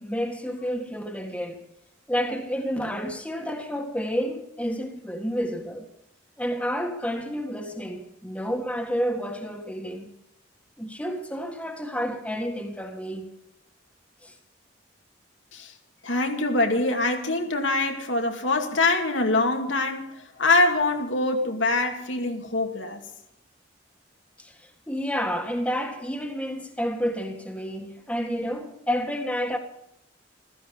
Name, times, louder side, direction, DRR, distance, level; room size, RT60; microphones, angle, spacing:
voice 1, 0.0-1.6 2.1-5.9 6.4-10.1 10.8-13.3 14.2-14.3 24.4-29.6, equal, 5° left, 1.7 m, -30 dB
voice 2, 16.0-23.0, left 2 dB, 75° left, 2.3 m, -24 dB
15.5 x 14.5 x 5.4 m
head